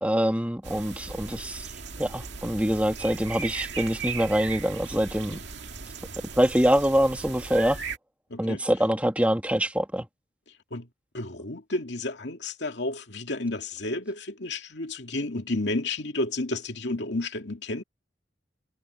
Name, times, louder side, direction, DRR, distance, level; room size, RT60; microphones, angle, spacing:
voice 1, 0.0-1.7 2.0-5.4 6.4-7.8 8.4-10.1, equal, 10° right, 1.7 m, -24 dB
sound 1, 0.6-8.0, right 5 dB, 75° right, 2.1 m, -37 dB
voice 2, 8.3-8.6 10.7-10.9 11.1-17.8, left 2 dB, 75° left, 2.3 m, -31 dB
head